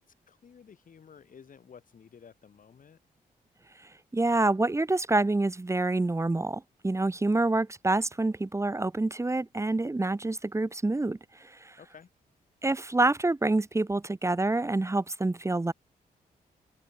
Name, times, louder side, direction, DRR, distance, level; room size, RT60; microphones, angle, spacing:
voice 1, 0.0-3.0 11.8-12.1, left 7 dB, 60° left, 7.6 m, -53 dB
voice 2, 4.1-11.8 12.6-15.7, right 2 dB, 20° right, 1.4 m, -27 dB
cardioid pair, 80°, 16 cm